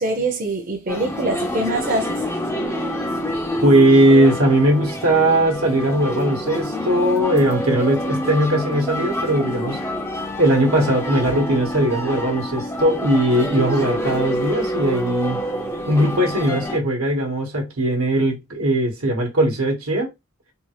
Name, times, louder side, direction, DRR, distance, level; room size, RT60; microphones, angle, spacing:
voice 1, 0.0-2.3, right 2 dB, 40° right, 0.7 m, -24 dB
sound 1, 0.9-16.8, equal, 10° left, 0.5 m, -27 dB
voice 2, 3.6-9.8 10.4-15.4 15.9-20.1, right 1 dB, 80° right, 1.2 m, -19 dB
3.6 x 2.4 x 3.0 m
head